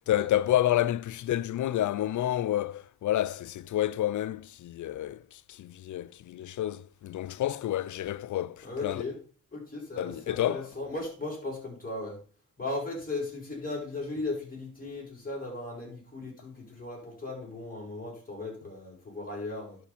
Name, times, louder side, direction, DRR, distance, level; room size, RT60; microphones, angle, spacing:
voice 1, 0.1-9.0 10.0-10.6, left 13 dB, 70° left, 0.5 m, -29 dB
voice 2, 8.6-9.2 9.5-12.2 12.6-19.8, left 2 dB, 30° left, 5.9 m, -37 dB
11.0 x 5.0 x 5.1 m
cardioid pair, 55°, 31 cm